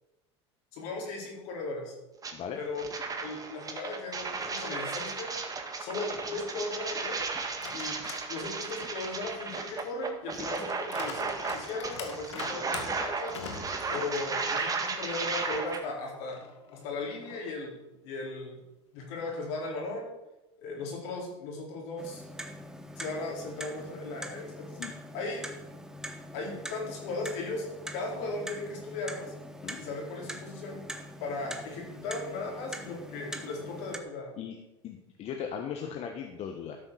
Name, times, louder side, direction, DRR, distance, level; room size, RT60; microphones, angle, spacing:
voice 1, 0.7-1.9 2.5-2.8 3.2-5.3 5.8-7.2 7.7-8.0 8.3-13.3 13.9-16.4 16.7-17.7 18.0-18.5 18.9-20.1 20.6-22.2 23.0-24.8 25.1-25.4 26.3-27.7 27.9-29.3 29.8-30.8 31.2-34.3, left 3 dB, 70° left, -1 dB, 4.4 m, -37 dB
sound 1, 2.2-2.3 2.7-15.8, right 4 dB, 25° right, 1.8 m, -35 dB
sound 2, 7.4-8.3 8.7-14.8 15.2-15.3 16.2-17.7, left 5 dB, 90° left, 1.7 m, -45 dB
Clock, 22.0-34.0, equal, 5° right, 1.2 m, -43 dB
voice 2, 34.8-36.8, left 7 dB, 45° left, 4 dB, 1.3 m, -38 dB
12.5 x 6.4 x 6.4 m, 0.96 s
hypercardioid pair, 90°, 14 cm